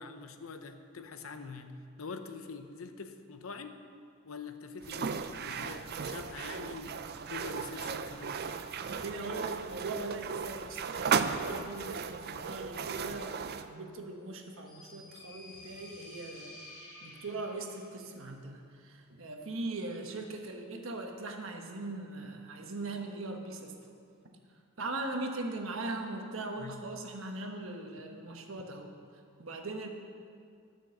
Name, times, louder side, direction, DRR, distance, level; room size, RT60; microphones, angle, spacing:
voice 1, 0.0-3.8 4.2-8.5 26.6-26.8, left 4 dB, 70° left, 8 dB, 0.7 m, -45 dB
sound 1, 4.8-13.7, right 6 dB, 45° right, 0.4 m, -36 dB
voice 2, 8.9-16.5 17.0-23.7 24.8-28.9 29.4-29.9, right 2 dB, 65° right, 3 dB, 1.2 m, -40 dB
sound 2, 14.3-18.0, left 2 dB, 20° left, 2.5 m, -51 dB
11.0 x 6.4 x 7.7 m, 2.3 s
head